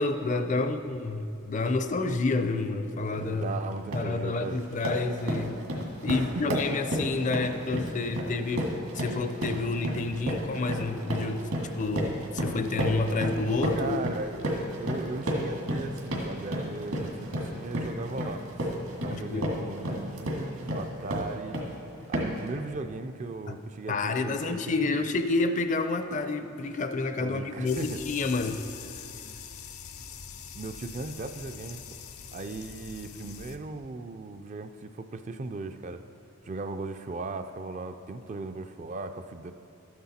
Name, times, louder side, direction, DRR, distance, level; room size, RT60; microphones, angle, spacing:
voice 1, 0.0-3.5 3.9-5.6 6.0-11.5 11.8-14.0 19.1-19.5 23.5-23.6 23.9-28.6, left 3 dB, 35° left, 9 dB, 0.4 m, -29 dB
sound 1, 3.1-3.3 3.7-4.1 4.5-21.8 22.1-22.5, equal, 75° right, 2.0 m, -32 dB
voice 2, 3.3-4.6 6.1-6.8 13.8-18.7 19.0-21.6 22.1-25.0 27.2-28.0 30.5-31.8 32.3-36.0 36.4-39.5, right 3 dB, 35° right, 8 dB, 0.3 m, -37 dB
sound 2, 27.7-33.6, left 7 dB, 85° left, 0.7 m, -43 dB
13.0 x 9.6 x 4.2 m, 2.6 s
head